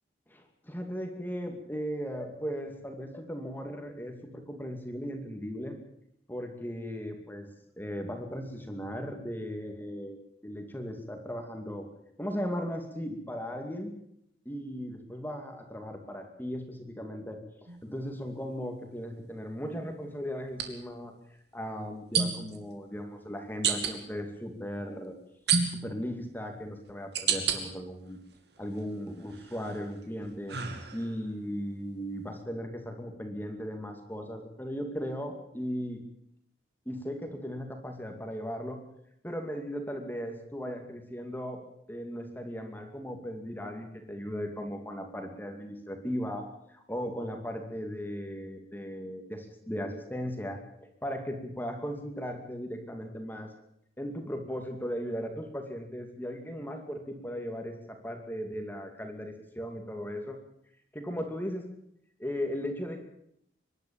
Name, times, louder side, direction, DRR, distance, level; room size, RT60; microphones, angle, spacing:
voice 1, 0.3-5.8 6.3-7.5 7.8-10.2 10.4-11.9 12.2-13.9 14.5-17.4 17.8-21.1 21.5-25.2 25.8-28.2 28.6-30.6 30.9-36.0 36.9-38.8 39.2-41.6 41.9-50.6 51.0-53.5 54.0-60.4 60.9-61.7 62.2-63.1, equal, 10° left, 4 dB, 2.4 m, -37 dB
sound 1, 17.7-17.9 20.5-20.7 22.1-22.6 23.6-23.9 25.5-26.0 26.6-27.6 28.1-28.8 29.3-31.3, right 7 dB, 60° right, 2.7 m, -30 dB
24.5 x 12.0 x 9.0 m, 0.74 s
head